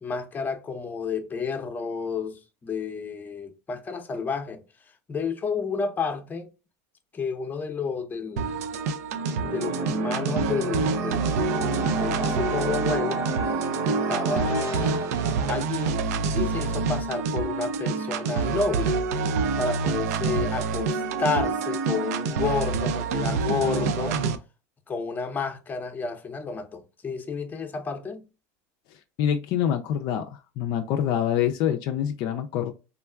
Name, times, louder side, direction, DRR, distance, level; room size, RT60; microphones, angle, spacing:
voice 1, 0.0-4.6 5.1-6.5 7.1-8.6 9.4-11.3 12.0-13.2 13.9-15.1 15.5-16.0 16.3-19.0 19.6-24.2 24.9-28.2, left 5 dB, 20° left, 0.6 m, -30 dB
sound 1, 8.4-24.4, right 4 dB, 80° right, 0.4 m, -27 dB
sound 2, 9.1-15.5, right 4 dB, 35° right, 0.7 m, -31 dB
voice 2, 29.2-30.2 30.6-32.7, left 9 dB, 55° left, 0.4 m, -25 dB
3.6 x 2.3 x 2.2 m
supercardioid pair, 100°, 8 cm